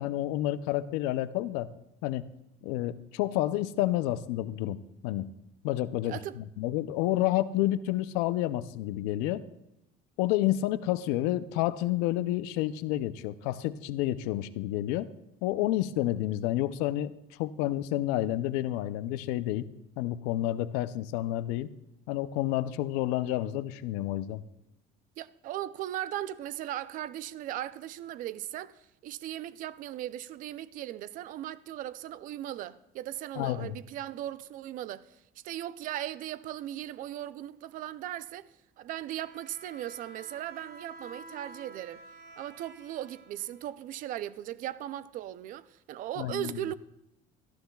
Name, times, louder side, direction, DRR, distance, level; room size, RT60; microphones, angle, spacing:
voice 1, 0.0-1.7 2.0-2.2 2.6-5.3 5.6-9.4 10.2-15.1 15.4-17.1 17.4-19.7 20.0-21.7 22.1-24.4 33.4-33.7 46.2-46.6, left 14 dB, 90° left, 0.5 m, -29 dB
voice 2, 6.0-6.4 25.2-35.2 35.4-38.5 38.8-42.0 42.4-46.8, right 12 dB, 55° right, 0.5 m, -38 dB
Bowed string instrument, 39.0-44.0, right 2 dB, 85° right, 1.5 m, -50 dB
17.5 x 13.5 x 2.3 m
cardioid pair, 130°, 16 cm